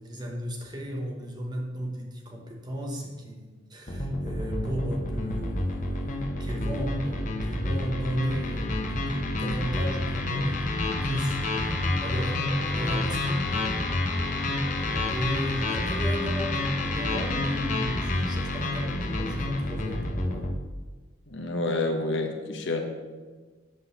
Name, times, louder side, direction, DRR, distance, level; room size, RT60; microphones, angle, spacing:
voice 1, 0.0-20.5, equal, 20° right, 0 dB, 1.0 m, -35 dB
sound 1, 3.9-20.6, left 2 dB, 40° left, 1.0 m, -28 dB
voice 2, 21.3-22.8, left 2 dB, 65° left, 3 dB, 1.1 m, -28 dB
8.2 x 3.9 x 6.9 m, 1.4 s
head